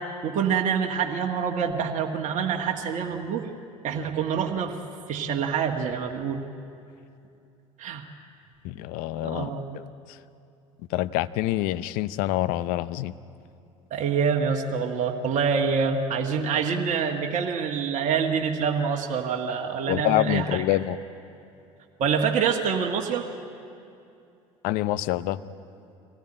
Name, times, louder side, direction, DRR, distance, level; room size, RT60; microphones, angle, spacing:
voice 1, 0.0-3.5 3.8-4.8 5.1-6.4 7.8-8.0 9.2-9.8 13.9-20.6 22.0-23.3, right 6 dB, 45° right, 2 dB, 1.7 m, -26 dB
voice 2, 8.6-9.5 10.9-13.1 19.9-21.0 24.6-25.4, left 15 dB, 60° left, 15 dB, 0.7 m, -26 dB
24.0 x 17.5 x 8.8 m, 2.6 s
hypercardioid pair, 70°, 17 cm